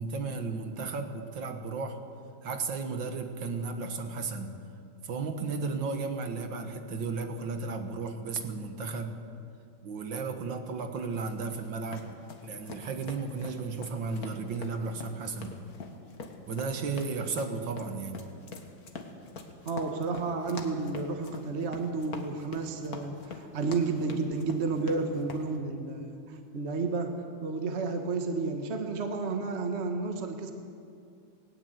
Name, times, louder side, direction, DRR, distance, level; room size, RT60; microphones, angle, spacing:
voice 1, 0.0-2.0 2.4-4.5 5.0-9.2 9.8-12.1 12.4-15.6 16.5-18.2, right 4 dB, 65° right, 6 dB, 2.1 m, -34 dB
sound 1, 11.1-25.5, left 4 dB, 50° left, 1.9 m, -44 dB
voice 2, 19.6-30.5, right 4 dB, 35° right, 5 dB, 1.4 m, -31 dB
18.5 x 18.5 x 8.0 m, 2.4 s
omnidirectional pair, 2.2 m